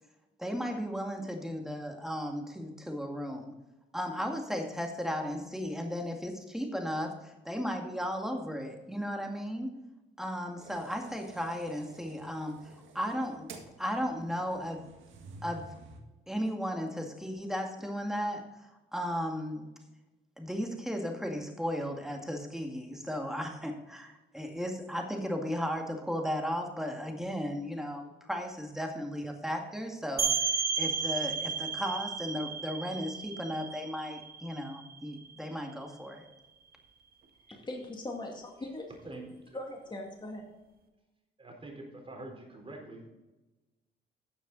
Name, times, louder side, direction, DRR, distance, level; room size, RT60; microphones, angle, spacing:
voice 1, 0.4-3.5 3.9-9.8 10.2-13.5 13.8-14.9 15.4-15.7 16.3-18.4 18.9-19.7 20.4-36.3, equal, ahead, 3 dB, 2.0 m, -35 dB
sound 1, 10.6-16.0, right 4 dB, 80° right, 1.7 m, -51 dB
sound 2, 30.2-35.7, right 6 dB, 50° right, 1.5 m, -33 dB
voice 2, 37.5-38.9 39.5-40.5, left 1 dB, 20° left, 0 dB, 2.2 m, -40 dB
voice 3, 41.4-43.1, right 2 dB, 30° right, 1 dB, 3.9 m, -45 dB
12.5 x 7.1 x 4.0 m, 1.1 s
cardioid pair, 90°, 20 cm